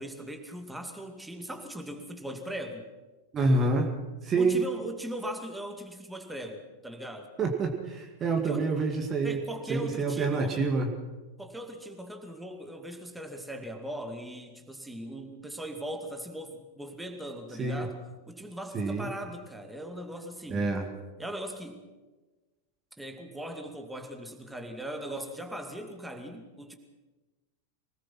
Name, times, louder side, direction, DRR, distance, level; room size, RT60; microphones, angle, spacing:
voice 1, 0.0-2.9 4.4-7.3 8.4-8.7 9.2-10.6 11.4-18.0 18.3-20.7 21.2-21.8 23.0-26.8, right 1 dB, 5° right, 5 dB, 2.5 m, -39 dB
voice 2, 3.3-3.9 4.2-4.6 7.4-9.4 9.7-10.9 17.6-17.9 18.7-19.1 20.5-20.8, right 3 dB, 25° right, 3 dB, 2.2 m, -27 dB
25.0 x 19.5 x 6.0 m, 1.2 s
figure-of-eight pair, 90°, 0 cm